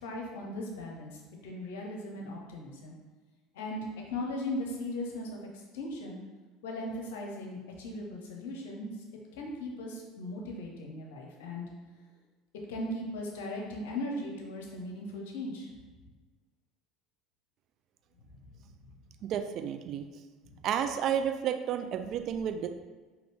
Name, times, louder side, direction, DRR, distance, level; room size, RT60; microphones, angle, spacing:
voice 1, 0.0-1.2 1.4-2.9 3.5-5.4 5.7-6.2 6.6-8.9 9.3-11.7 12.7-15.7 18.3-18.4, left 1 dB, 75° left, 0 dB, 0.8 m, -38 dB
voice 2, 19.3-20.1 20.6-22.7, right 8 dB, 50° right, 7 dB, 0.4 m, -31 dB
4.1 x 2.9 x 3.3 m, 1.4 s
hypercardioid pair, 70°, 0 cm